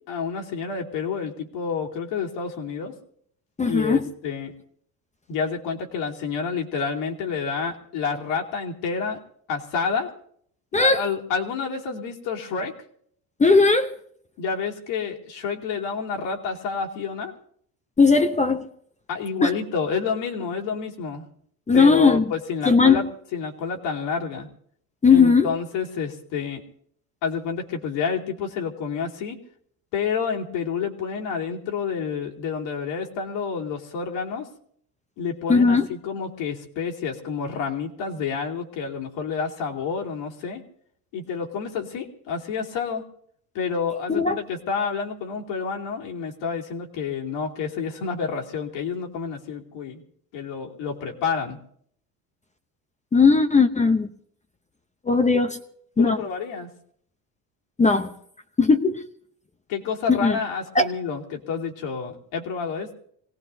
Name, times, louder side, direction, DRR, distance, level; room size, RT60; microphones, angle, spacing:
voice 1, 0.1-2.9 3.7-4.5 5.3-9.2 9.5-10.1 10.7-12.7 14.4-17.3 19.1-21.2 21.7-23.0 23.3-24.5 25.1-26.6 27.2-29.4 29.9-34.5 35.2-40.6 41.1-43.0 43.5-50.0 50.3-51.6 56.0-56.7 59.7-63.0, left 6 dB, 80° left, -1 dB, 2.9 m, -29 dB
voice 2, 3.6-4.0 10.7-11.0 13.4-13.9 18.0-18.7 19.4-19.5 21.7-22.3 22.6-23.0 25.0-25.5 35.5-35.9 44.1-44.4 53.1-54.1 55.0-55.6 56.0-56.2 57.8-58.1 58.6-59.1 60.1-60.4 60.7-60.9, left 4 dB, 15° left, 7 dB, 0.7 m, -18 dB
26.0 x 18.0 x 2.7 m, 0.64 s
cardioid pair, 125°, 43 cm